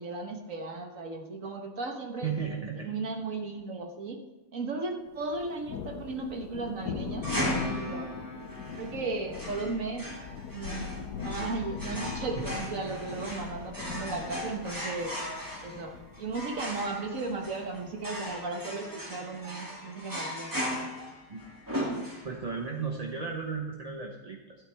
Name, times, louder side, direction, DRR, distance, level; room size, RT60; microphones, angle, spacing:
voice 1, 0.0-2.3 2.8-4.2 4.5-8.1 8.7-10.1 10.5-15.2 15.6-20.7, right 3 dB, 55° right, 3 dB, 1.6 m, -36 dB
voice 2, 2.2-2.9 12.4-12.6 21.3-21.4 22.2-24.6, right 5 dB, 30° right, 1 dB, 0.9 m, -35 dB
Thunder, 5.2-18.4, left 7 dB, 85° left, 1.4 m, -41 dB
sound 1, 7.2-22.6, equal, 10° right, 2.2 m, -37 dB
12.5 x 12.0 x 3.5 m, 1.1 s
omnidirectional pair, 1.7 m